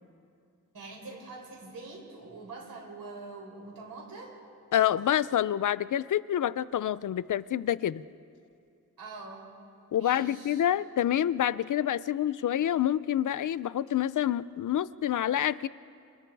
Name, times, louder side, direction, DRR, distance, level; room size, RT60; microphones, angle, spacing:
voice 1, 0.7-4.4 9.0-9.5 10.0-10.6, right 3 dB, 90° right, -2 dB, 7.0 m, -44 dB
voice 2, 4.7-8.0 9.9-15.7, left 11 dB, 65° left, 17 dB, 0.6 m, -27 dB
28.5 x 28.5 x 4.7 m, 2.5 s
wide cardioid pair, 160°, 34 cm